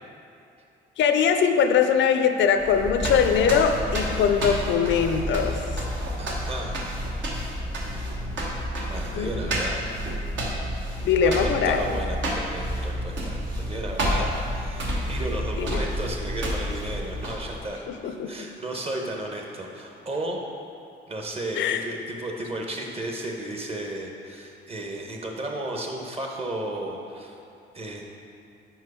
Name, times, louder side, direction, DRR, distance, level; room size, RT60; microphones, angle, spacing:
voice 1, 1.0-5.6 9.1-9.5 11.0-11.8 15.6-15.8 17.9-18.5 21.6-21.8, left 7 dB, 70° left, 7 dB, 0.5 m, -22 dB
sound 1, 2.6-17.7, equal, 70° right, 1.1 m, -29 dB
voice 2, 6.2-6.8 7.8-8.5 8.9-9.8 11.2-13.4 13.7-20.4 21.1-27.4 27.7-28.0, right 1 dB, 30° right, 1 dB, 0.8 m, -34 dB
4.6 x 4.5 x 4.8 m, 2.6 s
cardioid pair, 90°, 20 cm